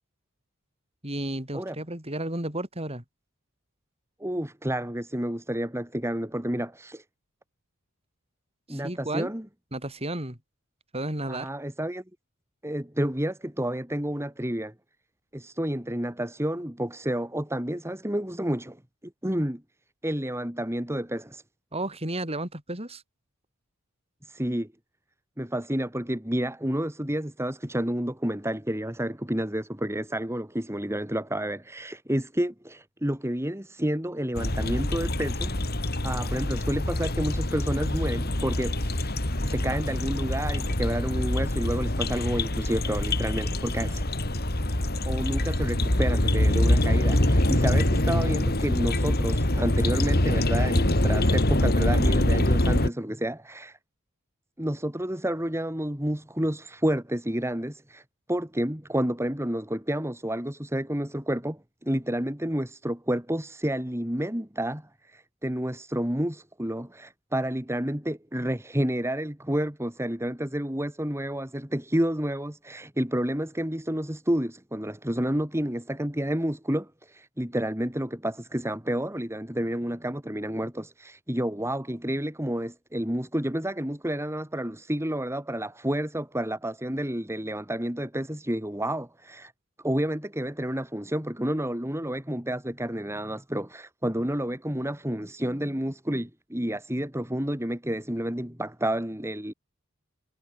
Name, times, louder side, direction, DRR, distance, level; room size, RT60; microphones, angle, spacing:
voice 1, 1.0-3.0 8.7-9.3 9.7-10.4 10.9-11.5 21.7-23.0, right 1 dB, 30° right, 6.6 m, -32 dB
voice 2, 4.2-7.0 8.7-9.5 11.3-12.0 12.6-14.7 15.3-18.8 19.2-19.6 20.0-21.4 24.2-24.7 25.4-35.7 36.0-39.2 39.4-44.0 45.0-53.8 54.6-58.0 58.3-89.5 89.8-99.5, right 1 dB, 10° right, 3.0 m, -30 dB
sound 1, 34.3-52.9, left 1 dB, 45° left, 3.2 m, -25 dB
head